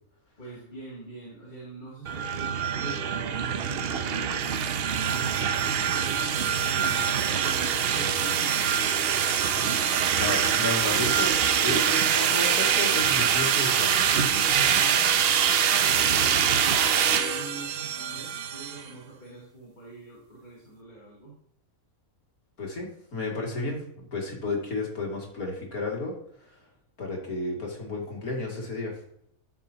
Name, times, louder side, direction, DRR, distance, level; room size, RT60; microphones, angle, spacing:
voice 1, 0.4-8.8 14.6-21.3, right 2 dB, 30° left, -6 dB, 2.7 m, -43 dB
sound 1, 2.1-18.8, right 8 dB, 55° right, 0.7 m, -24 dB
voice 2, 10.1-14.0 22.6-26.5 27.0-29.0, left 2 dB, 70° left, -1 dB, 2.9 m, -32 dB
13.5 x 6.0 x 2.8 m, 0.68 s
omnidirectional pair, 1.6 m